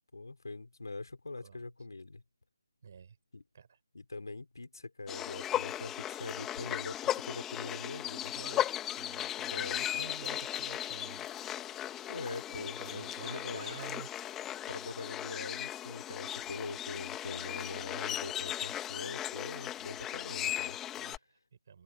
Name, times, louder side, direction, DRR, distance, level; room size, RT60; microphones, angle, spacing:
voice 1, 0.1-2.2 3.3-3.4 3.9-8.3 9.4-10.1 12.1-13.8 14.7-20.8, left 3 dB, 70° left, 4.3 m, -43 dB
voice 2, 2.8-3.2 3.5-3.8 8.3-11.3 11.7-11.8 12.5-14.1 21.0-21.8, right 6 dB, 40° right, 7.3 m, -50 dB
sound 1, 5.1-21.2, left 12 dB, 10° left, 2.0 m, -37 dB
figure-of-eight pair, 155°, 2 cm